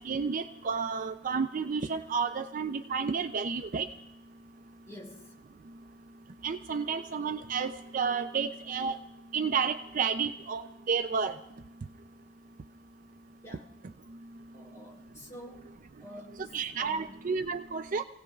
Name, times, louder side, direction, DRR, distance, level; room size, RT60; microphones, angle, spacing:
voice 1, 0.0-3.9 6.4-8.9 9.3-11.4 16.5-18.0, right 5 dB, 45° right, 8 dB, 0.4 m, -31 dB
voice 2, 4.9-5.3 13.4-13.7 14.5-15.7 16.0-17.3, equal, 15° left, -2 dB, 3.2 m, -48 dB
28.0 x 17.0 x 2.4 m, 0.89 s
head